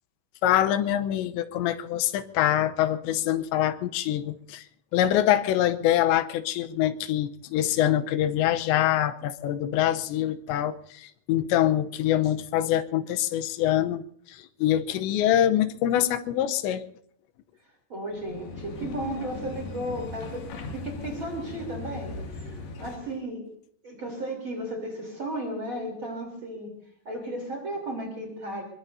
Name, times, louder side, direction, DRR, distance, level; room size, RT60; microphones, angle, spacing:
voice 1, 0.4-4.7 4.9-16.8, left 12 dB, 85° left, 10 dB, 3.1 m, -25 dB
voice 2, 17.9-23.5 23.8-26.7 27.1-28.6, right 1 dB, 30° right, 2 dB, 3.7 m, -34 dB
sound 1, 18.1-23.2, left 3 dB, 65° left, 4.1 m, -39 dB
23.5 x 23.0 x 2.7 m, 0.66 s
omnidirectional pair, 5.0 m